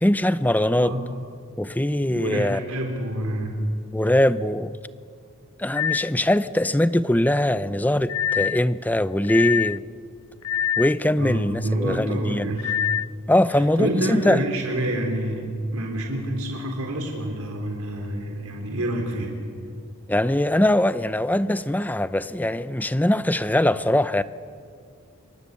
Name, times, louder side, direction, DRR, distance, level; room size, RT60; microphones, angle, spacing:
voice 1, 0.0-1.0 1.6-2.6 3.9-4.8 5.6-9.8 10.8-12.5 13.3-14.4 20.1-24.2, left 1 dB, 10° left, 0.6 m, -22 dB
voice 2, 2.0-3.6 11.2-12.7 13.8-19.3, right 1 dB, 90° right, 4.0 m, -27 dB
sound 1, 5.8-6.1 8.1-8.6 9.2-9.8 10.4-11.0 12.6-13.1, left 9 dB, 85° left, 0.6 m, -24 dB
26.5 x 24.0 x 8.3 m
head